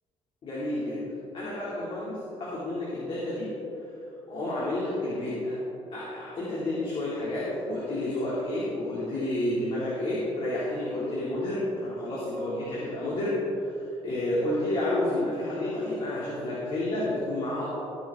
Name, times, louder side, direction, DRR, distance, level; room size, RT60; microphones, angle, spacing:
voice 1, 0.4-3.5 4.3-5.6 5.9-13.3 13.6-17.7, left 1 dB, 45° left, -7 dB, 2.7 m, -30 dB
19.0 x 7.2 x 3.7 m, 3.0 s
cardioid pair, 135°, 12 cm